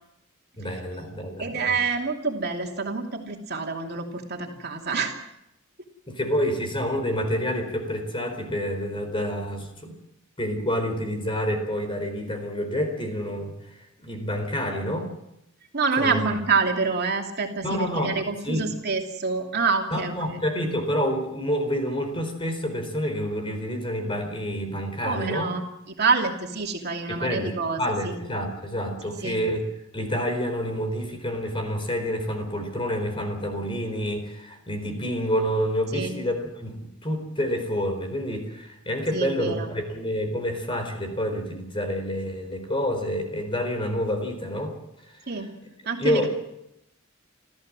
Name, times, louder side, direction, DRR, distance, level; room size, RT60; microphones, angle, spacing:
voice 1, 0.6-1.8 6.1-10.0 10.4-13.6 14.0-15.1 16.0-16.2 17.6-18.2 18.4-18.6 19.9-25.5 27.1-29.6 29.9-44.7 46.0-46.3, equal, 25° left, 5 dB, 4.3 m, -28 dB
voice 2, 1.4-5.2 15.7-20.4 25.0-28.2 29.2-29.4 35.9-36.2 39.1-39.7 45.3-45.5 45.8-46.3, right 4 dB, 50° right, 2 dB, 2.8 m, -27 dB
28.0 x 14.5 x 7.6 m, 0.85 s
head